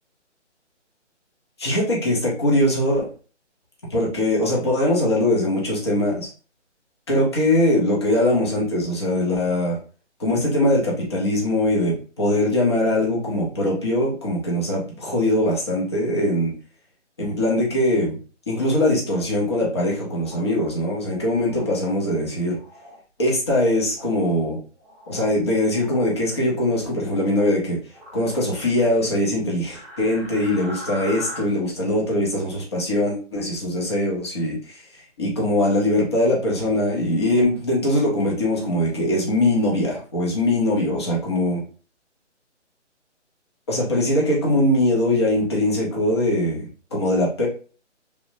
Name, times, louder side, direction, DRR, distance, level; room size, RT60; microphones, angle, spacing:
voice 1, 1.6-3.1 3.9-6.3 7.1-9.8 10.2-16.5 17.2-18.2 18.5-22.6 23.2-24.6 25.1-27.8 28.1-34.8 35.2-41.6 43.7-47.5, left 1 dB, 20° left, -4 dB, 0.6 m, -21 dB
sound 1, 20.1-20.7 21.4-21.7 22.5-23.0 23.9-24.3 24.8-25.4 25.7-26.1 27.1-27.5 27.9-28.8 29.7-31.4, equal, 15° right, 0.8 m, -40 dB
3.0 x 2.0 x 2.6 m, 0.39 s
hypercardioid pair, 155°, 36 cm